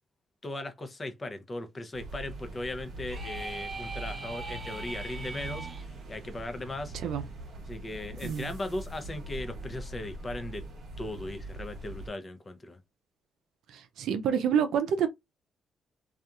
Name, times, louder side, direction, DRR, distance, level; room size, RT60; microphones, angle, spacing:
voice 1, 0.4-6.9 7.7-10.6 11.0-12.8, left 2 dB, 30° left, 0.6 m, -38 dB
sound 1, 1.9-12.1, right 2 dB, 60° right, 0.9 m, -42 dB
sound 2, 3.1-5.8, right 3 dB, 30° right, 0.7 m, -40 dB
voice 2, 13.7-15.1, right 8 dB, 80° right, 0.4 m, -28 dB
2.8 x 2.4 x 2.4 m
cardioid pair, 90°, 0 cm